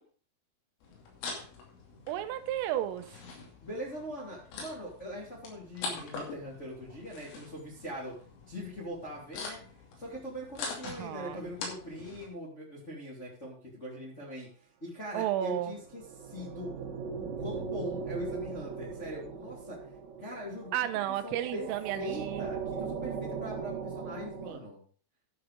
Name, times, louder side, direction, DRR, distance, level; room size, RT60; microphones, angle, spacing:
sound 1, 0.8-12.3, left 4 dB, 75° left, 5.2 m, -44 dB
voice 1, 2.1-3.2 10.9-11.4 15.1-15.7 20.7-22.5 24.5-24.6, right 12 dB, 85° right, 9 dB, 3.5 m, -33 dB
voice 2, 3.6-8.2 8.5-9.6 10.0-14.5 14.8-16.7 17.2-19.8 20.2-24.8, equal, 20° left, -5 dB, 2.0 m, -41 dB
sound 2, 15.6-24.5, right 6 dB, 70° right, 3.1 m, -39 dB
12.0 x 6.6 x 5.2 m, 0.42 s
omnidirectional pair, 5.8 m